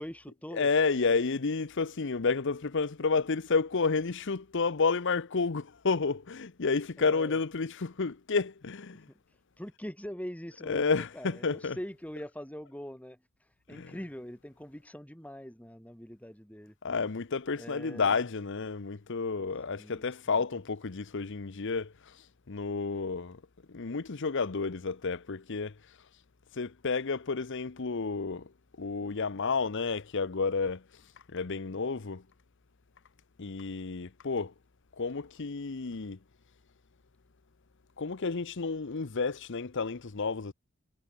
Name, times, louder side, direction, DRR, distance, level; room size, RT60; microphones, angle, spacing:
voice 1, 0.0-0.7 7.0-7.4 9.1-9.2 9.6-16.8 17.6-18.2 19.7-20.4, equal, 5° left, 3.0 m, -43 dB
voice 2, 0.5-9.1 10.7-11.8 13.7-13.9 16.8-23.4 23.7-26.0 26.5-28.5 28.8-31.0 31.3-32.2 33.4-34.5 34.9-36.2 38.0-40.5, left 4 dB, 55° left, 0.8 m, -31 dB
head